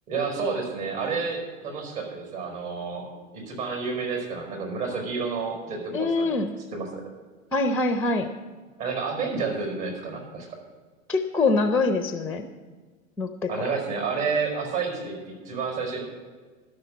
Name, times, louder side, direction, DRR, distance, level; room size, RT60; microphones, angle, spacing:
voice 1, 0.1-3.1 3.3-6.3 6.7-7.1 8.8-10.5 13.5-16.0, right 5 dB, 50° right, 1 dB, 4.7 m, -30 dB
voice 2, 5.9-6.5 7.5-8.3 11.1-12.5 13.2-13.7, left 3 dB, 5° left, 8 dB, 0.5 m, -24 dB
12.5 x 6.5 x 8.5 m, 1.4 s
hypercardioid pair, 100°, 41 cm